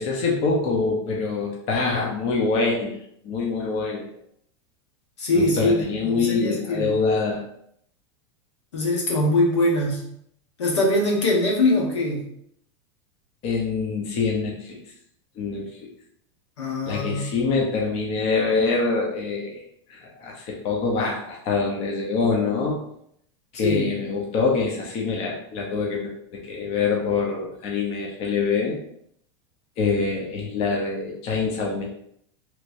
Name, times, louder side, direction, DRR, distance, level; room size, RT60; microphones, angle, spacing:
voice 1, 0.0-3.0 3.2-4.1 5.3-7.4 13.4-14.8 15.4-15.9 16.9-19.6 19.9-22.8 23.5-28.8 29.8-31.8, left 4 dB, 50° left, -1 dB, 0.8 m, -25 dB
voice 2, 5.2-6.9 8.7-10.0 10.6-12.2 16.6-17.3 23.5-23.9, left 1 dB, 90° left, -2 dB, 1.2 m, -22 dB
3.2 x 3.0 x 2.6 m, 0.71 s
hypercardioid pair, 115°, 15 cm